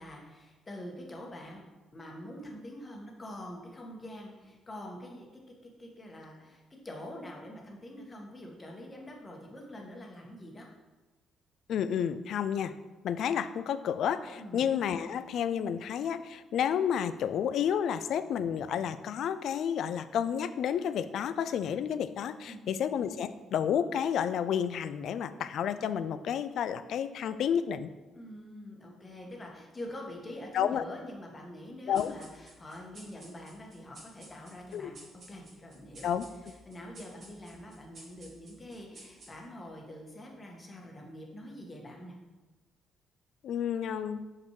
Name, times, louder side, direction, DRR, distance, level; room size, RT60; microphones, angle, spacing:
voice 1, 0.0-1.6 1.9-5.3 5.6-10.7 14.4-14.7 22.5-22.8 28.1-35.0 35.3-36.1 36.7-42.2, left 1 dB, 30° left, 0 dB, 1.6 m, -45 dB
voice 2, 11.7-12.7 13.0-27.9 30.5-30.8 31.9-32.1 34.7-34.9 36.0-36.3 43.4-44.3, left 8 dB, 65° left, 12 dB, 0.3 m, -31 dB
sound 1, 31.9-39.7, right 1 dB, 50° right, 2.1 m, -54 dB
6.5 x 5.3 x 3.2 m, 1.2 s
hypercardioid pair, 45°, 0 cm